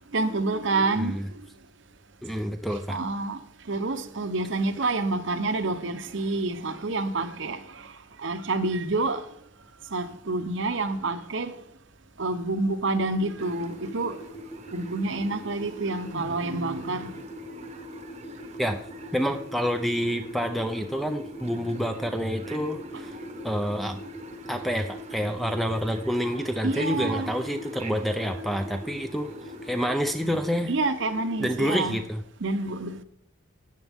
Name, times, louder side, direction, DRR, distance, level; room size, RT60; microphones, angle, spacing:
voice 1, 0.1-1.4 2.9-3.4 3.7-7.9 8.2-9.2 9.9-11.6 12.2-14.2 14.7-17.2 26.6-27.3 30.7-32.0 32.4-33.0, right 3 dB, 60° right, 0.8 m, -28 dB
voice 2, 1.0-1.3 2.2-3.0 18.6-18.8 19.1-23.1 23.4-24.0 24.5-29.3 29.6-30.7 31.4-32.2, equal, ahead, 0.5 m, -28 dB
sound 1, 13.3-31.7, right 1 dB, 30° left, 1.3 m, -43 dB
sound 2, 13.4-30.7, right 1 dB, 30° right, 1.0 m, -44 dB
13.5 x 9.3 x 3.6 m
head